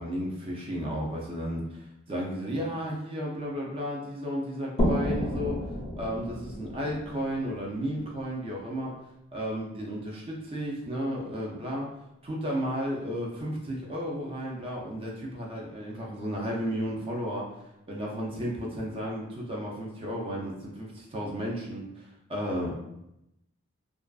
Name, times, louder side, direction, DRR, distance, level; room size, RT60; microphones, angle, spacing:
voice 1, 0.0-5.6 6.0-9.0 9.3-11.9 12.2-17.5 17.9-22.8, equal, 25° right, -2 dB, 0.4 m, -33 dB
sound 1, 4.8-8.3, equal, 30° left, 0.5 m, -31 dB
2.4 x 2.3 x 2.3 m, 0.86 s
head